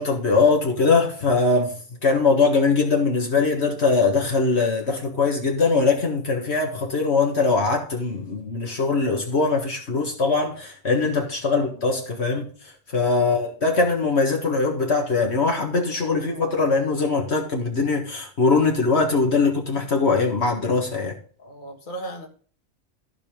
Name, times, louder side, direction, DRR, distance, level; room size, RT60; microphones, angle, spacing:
voice 1, 0.0-1.7 2.0-21.2, left 4 dB, 65° left, 1.9 m, -21 dB
voice 2, 21.4-22.3, right 1 dB, 40° left, 1.9 m, -37 dB
14.5 x 5.3 x 3.8 m
omnidirectional pair, 1.2 m